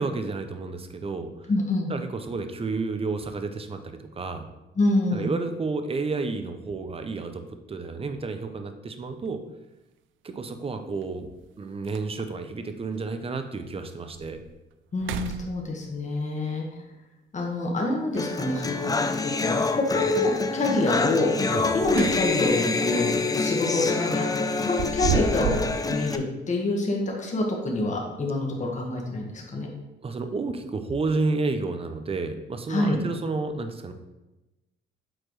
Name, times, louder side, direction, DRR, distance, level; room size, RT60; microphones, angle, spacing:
voice 1, 0.0-1.3 1.9-4.5 5.1-7.4 7.7-9.4 10.2-11.3 11.6-14.4 21.5-21.8 30.0-33.9, right 3 dB, 30° right, 8 dB, 0.7 m, -31 dB
voice 2, 1.5-1.9 4.8-5.3 14.9-16.6 17.3-18.9 19.2-21.3 21.7-29.7 32.7-33.0, left 2 dB, 35° left, -1 dB, 1.4 m, -26 dB
sound 1, 9.1-9.3 11.0-11.1 11.5-11.6 11.9-12.4 13.0-13.1 13.6-13.7 14.1-14.5 14.9-16.0 18.1-18.8 21.5-22.6 22.9-23.2 24.5-25.8, right 8 dB, 80° right, 0.4 m, -32 dB
sound 2, 18.2-26.2, left 3 dB, 20° left, 0.4 m, -26 dB
7.7 x 4.3 x 3.2 m, 1.0 s
cardioid pair, 90°, 20 cm